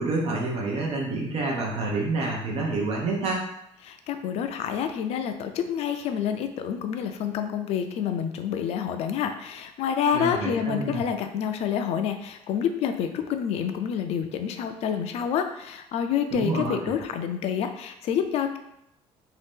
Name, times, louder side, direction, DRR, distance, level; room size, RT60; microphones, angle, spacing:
voice 1, 0.0-3.5 10.1-11.0 16.3-16.9, right 3 dB, 60° right, -2 dB, 0.6 m, -28 dB
voice 2, 3.8-18.6, left 8 dB, 65° left, 7 dB, 0.4 m, -28 dB
2.7 x 2.5 x 3.5 m, 0.79 s
cardioid pair, 140°, 12 cm